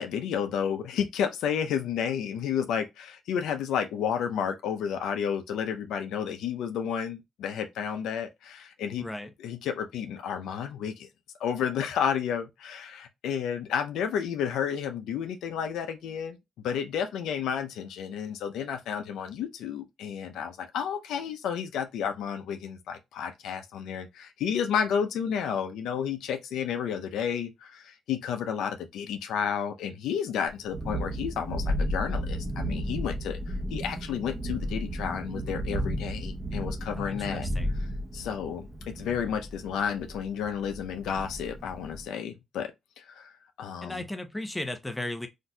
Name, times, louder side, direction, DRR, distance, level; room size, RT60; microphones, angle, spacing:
voice 1, 0.0-9.0 9.4-11.1 11.4-16.4 16.6-37.5 38.1-42.7 43.0-44.0, left 8 dB, 80° left, 0.5 m, -31 dB
voice 2, 9.0-9.3 37.0-37.7 43.8-45.3, left 1 dB, 10° left, 0.7 m, -35 dB
Thunderstorm, 30.5-42.0, equal, 25° right, 0.8 m, -33 dB
3.8 x 2.6 x 2.2 m
cardioid pair, 90°, 0 cm